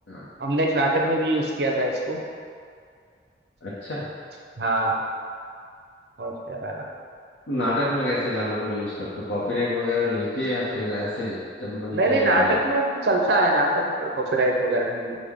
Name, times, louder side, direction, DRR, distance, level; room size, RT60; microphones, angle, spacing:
voice 1, 0.4-2.2 4.6-4.9 6.2-6.8 11.9-15.2, right 1 dB, 60° right, 0 dB, 0.5 m, -23 dB
voice 2, 3.6-4.0 7.5-12.6, left 2 dB, 75° left, -9 dB, 0.7 m, -27 dB
6.1 x 2.1 x 3.5 m, 2.2 s
head